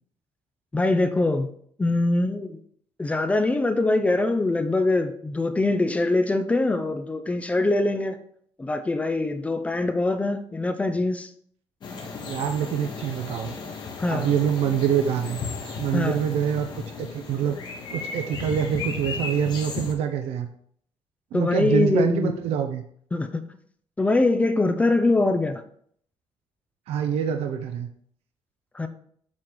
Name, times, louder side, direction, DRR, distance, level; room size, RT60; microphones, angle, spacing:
voice 1, 0.7-1.5 1.8-2.6 3.0-8.2 8.6-11.3 14.0-14.3 15.9-16.2 21.3-22.3 23.1-23.4 24.0-25.6 28.7-28.9, left 2 dB, 15° left, 0.5 m, -23 dB
sound 1, 11.8-19.9, left 4 dB, 45° left, 1.5 m, -35 dB
voice 2, 12.3-13.6 14.1-15.4 15.8-17.6 17.9-20.5 21.3-22.8 26.9-27.9, right 8 dB, 75° right, 0.6 m, -25 dB
7.5 x 3.8 x 4.7 m
cardioid pair, 160°, 10 cm